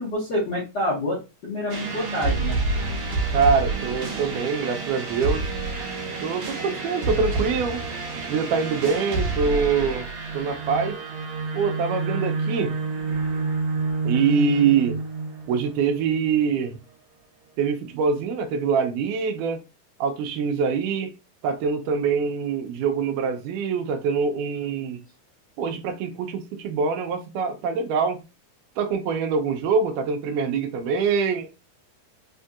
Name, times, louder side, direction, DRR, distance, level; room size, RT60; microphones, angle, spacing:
voice 1, 0.0-2.6, left 1 dB, 80° left, 0.9 m, -27 dB
sound 1, 1.7-16.4, right 3 dB, 60° right, 2.2 m, -28 dB
voice 2, 3.3-5.5 6.2-7.8 8.3-10.1 10.3-11.0 11.5-12.7 14.0-15.0 15.5-16.8 17.6-19.6 20.0-21.1 21.4-25.0 25.6-28.2 28.8-31.5, right 5 dB, 85° right, 2.1 m, -24 dB
5.2 x 2.7 x 2.4 m
omnidirectional pair, 3.7 m